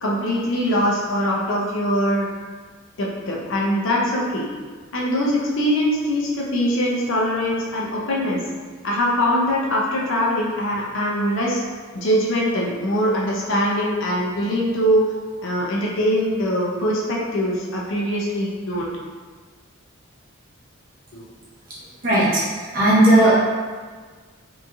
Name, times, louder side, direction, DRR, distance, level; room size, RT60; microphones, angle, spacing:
voice 1, 0.0-2.3 3.0-4.5 4.9-8.4 8.8-11.6 11.9-15.1 15.4-18.9 21.1-21.3, equal, 60° left, -4 dB, 0.5 m, -22 dB
voice 2, 22.0-23.3, right 1 dB, 40° right, -9 dB, 0.8 m, -16 dB
3.0 x 2.6 x 2.3 m, 1.5 s
head